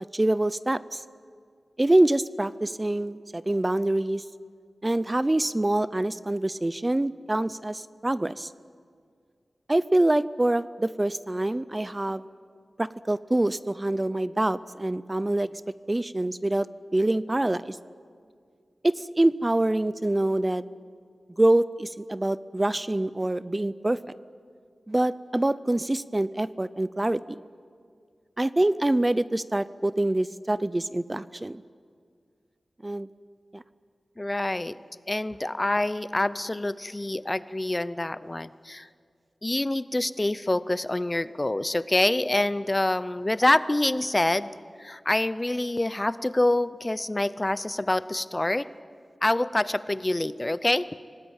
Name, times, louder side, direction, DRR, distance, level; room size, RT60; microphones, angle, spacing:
voice 1, 0.1-1.0 1.8-4.2 4.8-8.5 9.7-12.3 12.8-15.5 15.9-16.7 16.9-17.8 18.8-20.6 21.4-24.0 24.9-27.4 28.4-31.6 32.8-33.1 33.5-33.6, right 1 dB, 20° right, 16 dB, 0.5 m, -25 dB
voice 2, 34.2-34.8 35.1-38.9 39.4-44.5 44.8-48.7 49.2-50.9, left 1 dB, 25° left, 16 dB, 0.6 m, -26 dB
26.0 x 19.0 x 8.9 m, 2.1 s
wide cardioid pair, 95°, 0 cm